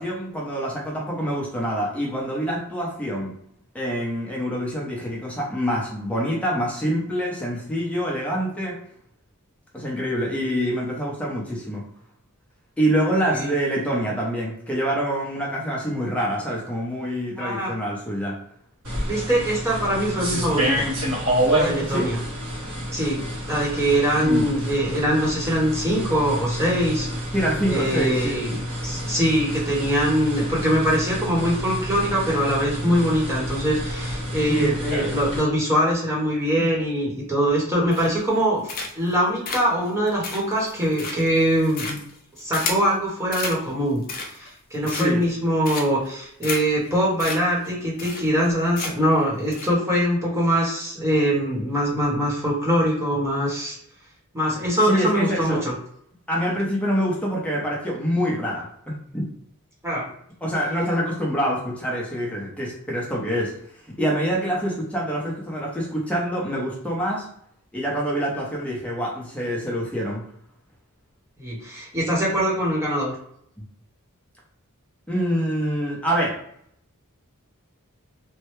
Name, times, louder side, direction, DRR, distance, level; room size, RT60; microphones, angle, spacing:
voice 1, 0.0-3.3 3.7-8.8 9.7-11.8 12.8-18.4 21.9-22.1 24.2-24.5 27.3-28.4 34.5-34.8 36.6-36.7 44.8-45.2 54.8-55.6 56.3-58.7 59.1-59.3 60.4-63.5 63.9-67.3 67.7-70.2 73.6-73.7 75.1-76.4, equal, 5° left, -4 dB, 0.7 m, -25 dB
voice 2, 17.4-17.7 19.1-20.9 21.5-22.2 22.9-23.2 23.5-27.3 27.7-42.0 42.4-53.8 54.3-55.7 59.8-60.0 71.4-73.1, equal, 10° right, -5 dB, 1.1 m, -23 dB
sound 1, 18.8-35.4, equal, 70° right, 1.4 m, -28 dB
sound 2, 37.9-38.3 38.7-39.1 39.5-42.9 43.3-43.6 44.0-44.5 44.8-45.3 45.7-46.1 46.4-46.6 46.9-47.0 47.2-47.4 47.6-47.7 48.0-48.5 48.8-49.1 49.5-49.7, left 4 dB, 40° left, 0.5 m, -32 dB
3.1 x 2.2 x 3.1 m, 0.70 s
head